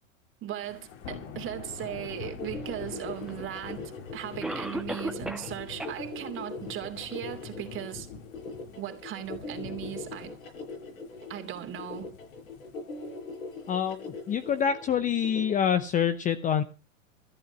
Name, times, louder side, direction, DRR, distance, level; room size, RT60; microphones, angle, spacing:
voice 1, 0.4-8.1 8.8-10.4 11.3-12.1, right 11 dB, 30° right, 3.0 m, -38 dB
Thunder / Rain, 0.6-14.6, left 7 dB, 55° left, 2.8 m, -46 dB
sound 1, 1.8-15.5, left 3 dB, 90° left, 7.3 m, -41 dB
Cough, 3.3-3.4 4.4-5.5 5.8-5.9 6.5-6.6 7.1-7.2, right 1 dB, ahead, 1.3 m, -34 dB
voice 2, 13.7-16.6, left 8 dB, 20° left, 0.8 m, -26 dB
14.0 x 8.8 x 7.2 m
hypercardioid pair, 115°, 40 cm